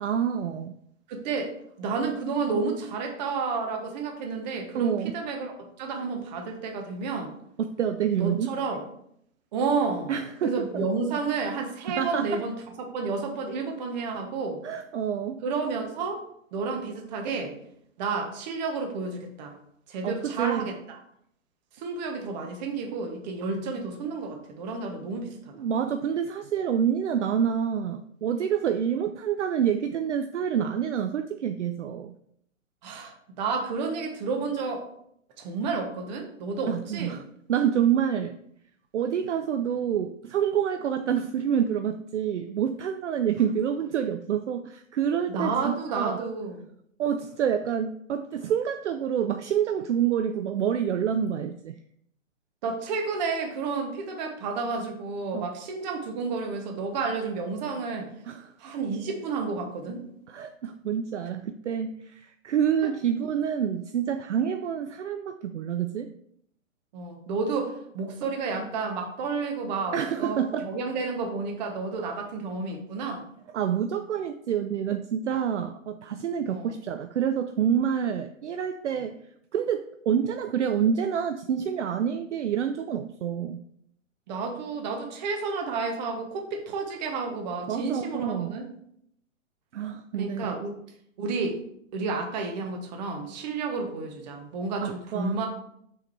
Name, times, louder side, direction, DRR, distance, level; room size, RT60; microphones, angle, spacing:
voice 1, 0.0-0.7 4.7-5.1 7.6-8.5 10.1-10.9 11.9-12.3 14.6-15.4 20.0-20.7 25.6-32.1 36.7-37.2 37.5-38.4 38.9-46.2 47.0-51.8 55.3-55.5 58.3-58.5 60.3-66.1 69.9-70.7 73.5-79.2 79.5-83.6 87.7-88.6 89.7-90.5 94.8-95.4, right 8 dB, 60° right, 8 dB, 0.5 m, -27 dB
voice 2, 1.1-1.5 1.8-7.3 8.2-8.8 9.5-10.2 10.4-14.6 15.4-16.2 16.5-17.5 18.0-19.5 19.9-21.0 21.7-25.7 32.8-34.9 35.4-37.2 45.3-46.6 52.6-58.1 58.6-60.0 62.8-62.9 66.9-73.2 76.5-76.7 78.9-79.0 84.3-88.7 90.2-90.7 91.2-91.6 91.9-95.5, right 4 dB, 30° right, 3 dB, 1.2 m, -31 dB
6.1 x 3.8 x 4.5 m, 0.71 s
figure-of-eight pair, 125°, 40 cm